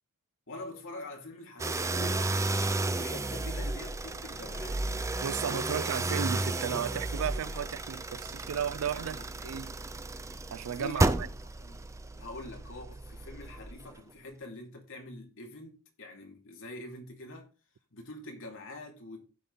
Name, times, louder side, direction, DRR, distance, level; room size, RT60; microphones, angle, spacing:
voice 1, 0.5-2.2 2.9-4.8 5.7-5.8 8.9-9.5 10.7-11.3 11.6-11.8 12.1-17.5 17.9-19.2, left 2 dB, 60° left, 2.8 m, -45 dB
sound 1, 1.6-14.0, right 2 dB, 15° right, 0.5 m, -33 dB
voice 2, 5.2-9.2 9.4-9.8 10.5-11.3, right 8 dB, 65° right, 0.4 m, -34 dB
15.0 x 5.3 x 4.0 m
head